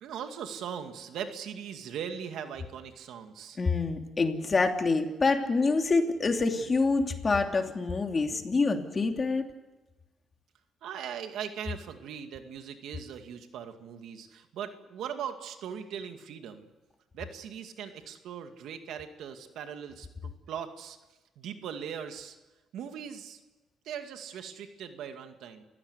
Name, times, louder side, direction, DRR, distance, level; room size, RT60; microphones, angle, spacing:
voice 1, 0.0-3.6 10.8-16.7 17.1-21.0 21.4-22.4 22.7-23.4 23.8-25.6, right 8 dB, 80° right, 7 dB, 2.2 m, -40 dB
voice 2, 3.6-9.4, left 3 dB, 35° left, 4 dB, 2.9 m, -26 dB
29.0 x 16.5 x 8.1 m, 1.1 s
cardioid pair, 90°, 0 cm